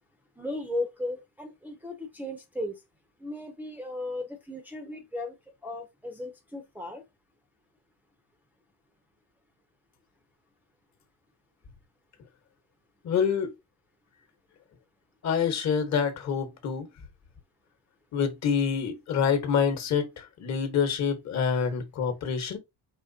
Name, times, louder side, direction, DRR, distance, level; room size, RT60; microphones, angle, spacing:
voice 1, 0.4-2.8 3.2-5.4 5.6-7.0, left 1 dB, 5° right, 0.5 m, -36 dB
voice 2, 13.0-13.5 15.2-16.9 18.1-22.6, left 6 dB, 40° left, 1.2 m, -27 dB
4.9 x 3.2 x 2.7 m
cardioid pair, 170°, 41 cm